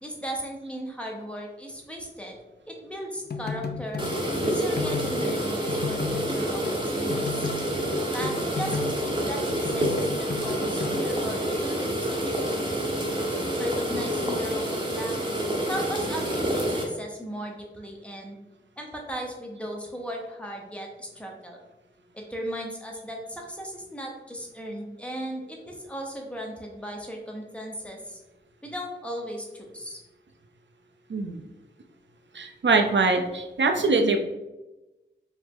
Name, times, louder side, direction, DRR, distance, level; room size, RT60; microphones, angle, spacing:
voice 1, 0.0-2.4 2.7-4.1 4.4-7.5 8.1-12.8 13.6-15.2 15.7-18.4 18.8-21.6 22.1-28.2 28.6-30.0, equal, 5° left, 0 dB, 0.8 m, -36 dB
sound 1, 3.3-6.8 7.1-11.1, left 4 dB, 55° left, 0.4 m, -34 dB
sound 2, 4.0-16.8, right 1 dB, 25° right, 0.9 m, -28 dB
voice 2, 31.1-31.4 32.3-34.2, right 3 dB, 70° right, 4 dB, 0.5 m, -23 dB
4.8 x 2.0 x 3.6 m, 1.0 s
wide cardioid pair, 75°, 20 cm